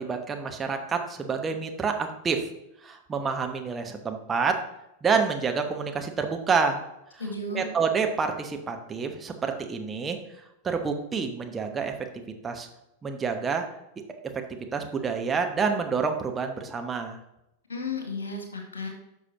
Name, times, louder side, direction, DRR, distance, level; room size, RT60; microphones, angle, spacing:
voice 1, 0.0-2.5 2.8-4.6 5.0-6.8 7.1-7.2 7.5-11.9 12.4-12.7 13.0-13.7 14.2-17.2, right 5 dB, 20° right, 4 dB, 1.0 m, -28 dB
voice 2, 7.2-7.6 17.7-18.9, left 3 dB, 70° left, 3 dB, 1.9 m, -33 dB
11.0 x 6.1 x 2.9 m, 0.87 s
figure-of-eight pair, 90°, 0 cm